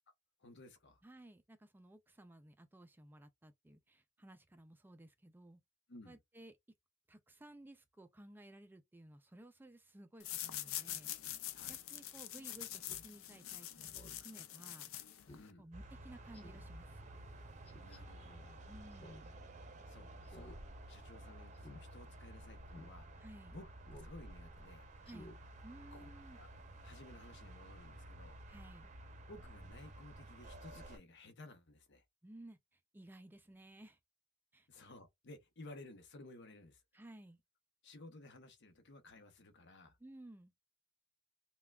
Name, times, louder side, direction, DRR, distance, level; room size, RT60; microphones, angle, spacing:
voice 1, 0.4-1.0 5.9-6.2 11.5-11.8 15.4-15.7 17.7-18.7 19.9-20.6 20.8-23.1 23.5-23.7 24.0-24.9 25.9-26.5 26.8-28.4 29.3-32.0 34.7-36.8 37.8-40.0, left 2 dB, 60° left, 0.9 m, -56 dB
voice 2, 1.0-5.6 6.1-6.5 7.1-11.1 11.7-13.9 14.2-14.9 15.6-17.0 18.7-19.3 23.2-23.5 25.0-25.3 25.6-26.4 28.5-28.9 32.2-34.0 34.5-34.7 36.9-37.4 40.0-40.5, right 1 dB, 10° right, 0.3 m, -56 dB
sound 1, 10.2-15.5, left 12 dB, 90° left, 0.5 m, -45 dB
Speech synthesizer, 12.8-13.0 13.4-13.5 13.8-14.2 14.6-14.7 15.3-15.5 15.8-15.9 16.3-16.7 17.6-18.0 18.9-19.3 19.6-19.7 20.2-20.6 20.9-21.1 21.5-21.8 22.2-22.3 22.7-22.9 23.8-24.1 24.5-24.6 25.0-25.4 25.7-25.8, left 1 dB, 30° left, 1.0 m, -55 dB
sound 2, 15.7-31.0, right 1 dB, 35° right, 0.6 m, -53 dB
5.6 x 2.3 x 2.2 m
head